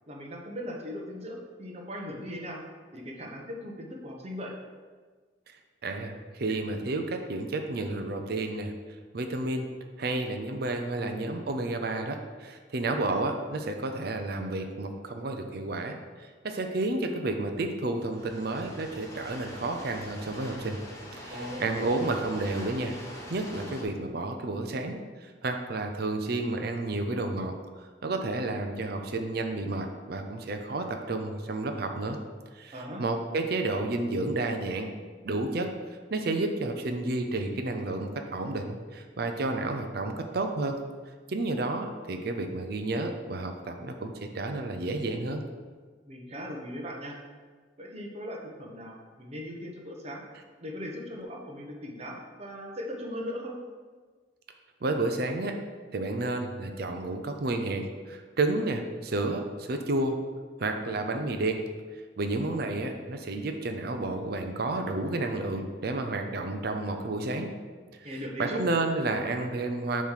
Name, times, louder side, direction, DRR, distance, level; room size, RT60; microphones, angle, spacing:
voice 1, 0.1-2.6 2.9-4.5 21.3-21.8 32.7-33.0 46.1-47.2 47.8-50.2 50.6-53.5 68.0-68.6, equal, 40° right, -1 dB, 1.0 m, -38 dB
voice 2, 5.8-8.7 9.1-20.8 21.2-23.0 23.3-32.2 32.5-34.9 35.2-35.7 36.1-40.8 41.3-45.4 54.8-55.6 55.9-60.2 60.6-61.6 62.2-67.5 68.1-70.0, right 2 dB, 60° right, 5 dB, 0.6 m, -31 dB
sound 1, 18.1-23.8, left 1 dB, 20° left, 1.1 m, -44 dB
7.0 x 3.2 x 5.7 m, 1.5 s
head